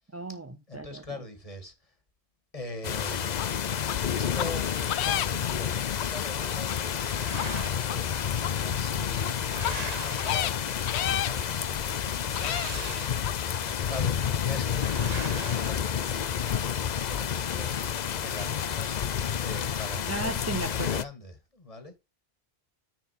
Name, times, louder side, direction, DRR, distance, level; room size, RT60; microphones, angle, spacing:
voice 1, 0.1-1.2 20.1-20.9, right 2 dB, 20° right, 0.5 m, -35 dB
voice 2, 0.7-1.9 2.5-3.3 4.1-13.0 13.7-15.9 16.9-22.0, left 2 dB, 30° left, 2.0 m, -43 dB
sound 1, 2.8-21.0, left 8 dB, 50° left, 0.6 m, -30 dB
sound 2, 3.4-3.5 3.9-4.0 4.4-4.5 4.9-5.5 6.0-6.1 6.7-6.8 7.3-7.4 7.9-8.0 8.4-8.5 9.2-9.3 9.6-9.7 10.2-10.5 10.9-11.3 11.9-12.0 12.3-12.7 13.2-13.3, left 11 dB, 80° left, 0.9 m, -30 dB
sound 3, 6.9-8.1 8.9-11.1 12.2-13.6 14.6-16.5, right 5 dB, 40° right, 0.9 m, -42 dB
10.0 x 4.3 x 4.4 m
omnidirectional pair, 1.1 m